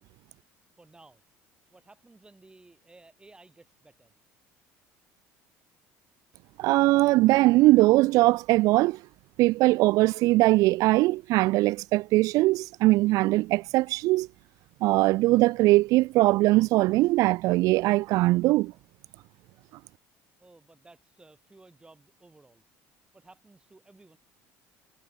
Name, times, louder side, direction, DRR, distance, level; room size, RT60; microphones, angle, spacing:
voice 1, 0.8-1.2 1.7-4.1 20.4-22.6 23.1-24.2, right 2 dB, 15° right, 7.8 m, -55 dB
voice 2, 6.6-9.0 9.4-14.3 14.8-18.7, right 19 dB, 65° right, 0.3 m, -21 dB
supercardioid pair, 100°, 6 cm